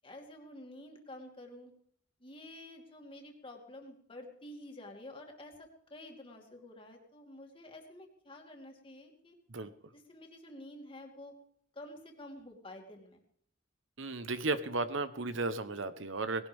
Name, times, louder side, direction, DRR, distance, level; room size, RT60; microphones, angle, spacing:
voice 1, 0.0-1.7 2.2-9.4 9.9-11.3 11.7-13.2, left 1 dB, 25° left, 1 dB, 2.5 m, -50 dB
voice 2, 14.0-16.5, right 3 dB, 70° right, 12 dB, 1.0 m, -34 dB
20.0 x 17.0 x 3.5 m, 0.65 s
head